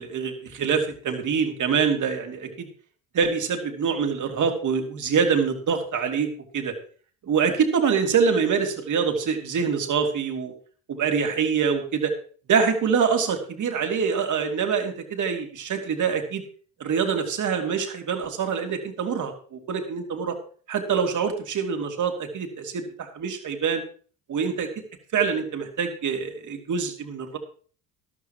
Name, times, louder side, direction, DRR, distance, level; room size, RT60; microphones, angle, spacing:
voice 1, 0.0-2.7 3.1-6.3 6.5-6.7 7.2-10.5 10.9-12.1 12.5-16.4 16.8-20.4 20.7-23.8 24.3-24.7 25.1-27.4, right 6 dB, 50° right, 4 dB, 2.7 m, -25 dB
13.5 x 12.0 x 3.0 m, 0.43 s
supercardioid pair, 75°, 40 cm